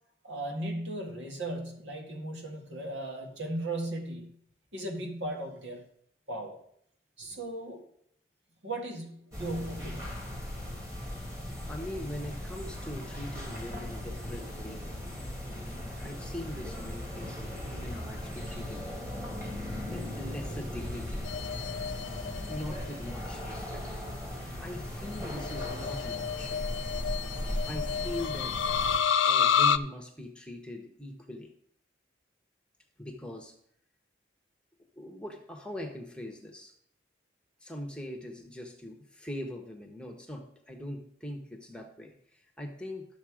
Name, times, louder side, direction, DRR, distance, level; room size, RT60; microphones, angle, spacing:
voice 1, 0.2-4.3 4.7-5.8 6.3-6.6 7.2-7.8 8.6-10.4, right 1 dB, 75° right, 2 dB, 2.0 m, -37 dB
sound 1, 9.3-29.0, left 1 dB, 15° right, 2.1 m, -38 dB
voice 2, 11.7-15.1 15.6-18.9 19.8-21.3 22.5-23.8 24.3-26.7 27.6-28.6 29.3-31.5 33.0-33.5 34.9-36.7 37.6-43.1, left 1 dB, 5° left, 3 dB, 1.0 m, -41 dB
sound 2, 21.2-22.9 25.2-29.8, left 7 dB, 75° left, 0.4 m, -29 dB
12.0 x 6.7 x 4.9 m, 0.67 s
head